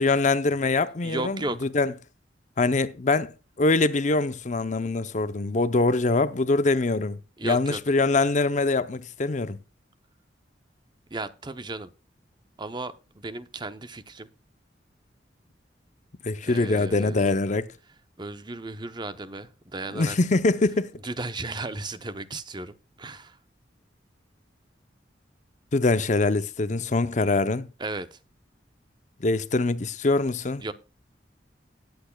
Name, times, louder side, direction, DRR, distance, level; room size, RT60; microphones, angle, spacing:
voice 1, 0.0-1.9 2.6-3.3 3.6-7.2 7.4-9.6 16.2-17.7 19.9-20.9 25.7-27.7 29.2-30.6, left 3 dB, 40° left, 0.7 m, -23 dB
voice 2, 1.0-1.7 7.4-7.8 11.1-11.9 12.6-14.3 16.4-17.4 18.2-20.2 21.0-23.4 27.8-28.2 30.6-30.7, right 2 dB, 25° right, 0.7 m, -35 dB
18.0 x 8.5 x 2.3 m
head